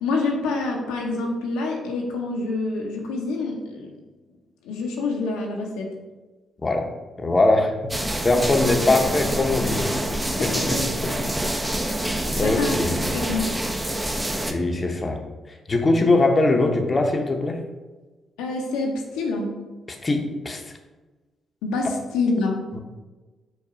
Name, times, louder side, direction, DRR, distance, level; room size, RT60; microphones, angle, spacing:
voice 1, 0.0-3.9 4.6-5.9 10.3-10.9 12.3-12.8 13.1-13.6 18.4-19.6 21.6-22.6, left 3 dB, 85° left, 0 dB, 0.6 m, -27 dB
voice 2, 7.2-7.7 8.2-9.8 10.4-11.1 12.4-13.0 14.5-15.2 15.7-17.6 20.0-20.6 22.7-22.8, left 2 dB, 35° left, 4 dB, 0.7 m, -21 dB
sound 1, 7.9-14.5, right 1 dB, 15° right, 0.6 m, -26 dB
4.7 x 2.3 x 4.8 m, 1.2 s
supercardioid pair, 50°, 0 cm